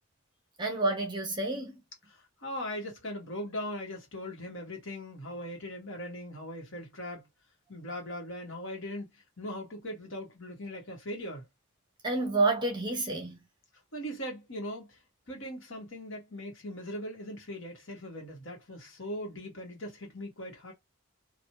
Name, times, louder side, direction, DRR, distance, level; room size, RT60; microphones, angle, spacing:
voice 1, 0.6-1.8 12.0-13.5, right 2 dB, 20° right, 0.9 m, -29 dB
voice 2, 2.1-7.3 7.7-11.4 13.9-15.0 15.3-20.7, equal, 60° left, 1.5 m, -40 dB
3.1 x 2.6 x 2.8 m
head